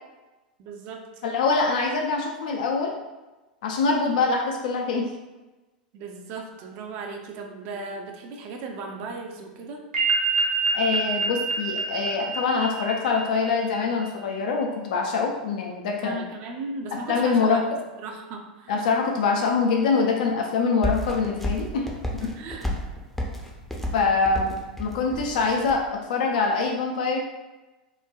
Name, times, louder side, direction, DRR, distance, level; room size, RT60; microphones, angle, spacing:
voice 1, 0.6-1.1 5.9-9.8 16.0-18.7 22.2-22.7, right 3 dB, 45° right, 2 dB, 0.5 m, -36 dB
voice 2, 1.2-2.9 3.6-5.1 10.7-16.2 16.9-17.6 18.7-21.9 23.9-24.5 24.8-27.2, left 4 dB, 65° left, 1 dB, 0.3 m, -24 dB
sound 1, 9.9-14.0, right 4 dB, 70° right, 0.9 m, -27 dB
sound 2, 20.8-25.8, left 1 dB, 5° left, 0.5 m, -31 dB
3.1 x 2.1 x 2.3 m, 1.1 s
figure-of-eight pair, 90°, 5 cm